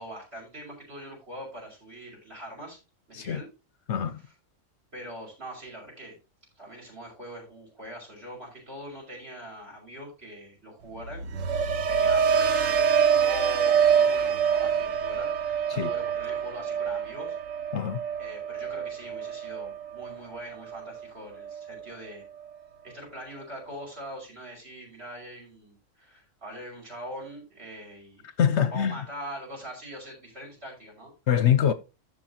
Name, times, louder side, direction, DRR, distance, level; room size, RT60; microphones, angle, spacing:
voice 1, 0.0-2.8 3.1-3.5 4.9-6.2 6.6-11.6 11.9-17.4 18.2-22.2 22.8-28.2 28.7-31.1, equal, 50° right, 6.2 m, -42 dB
voice 2, 3.9-4.2 15.7-15.9 17.7-18.0 28.4-29.0 31.3-31.7, left 9 dB, 65° left, 0.9 m, -24 dB
sound 1, 11.0-21.0 21.4-21.8, right 7 dB, 80° right, 1.3 m, -26 dB
15.0 x 5.9 x 2.9 m
omnidirectional pair, 1.3 m